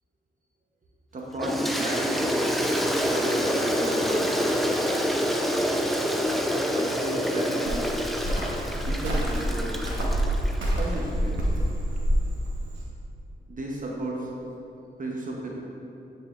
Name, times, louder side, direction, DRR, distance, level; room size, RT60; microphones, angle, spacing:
voice 1, 1.1-2.1 3.1-4.5 6.7-8.0 8.8-9.8 10.8-11.5 13.5-14.3 15.0-15.5, right 1 dB, 40° right, -2 dB, 0.8 m, -33 dB
Toilet flush, 1.4-10.7, equal, ahead, 0.5 m, -27 dB
Cricket, 7.7-12.8, equal, 80° right, 1.0 m, -27 dB
9.5 x 4.1 x 2.4 m, 2.9 s
cardioid pair, 60°, 20 cm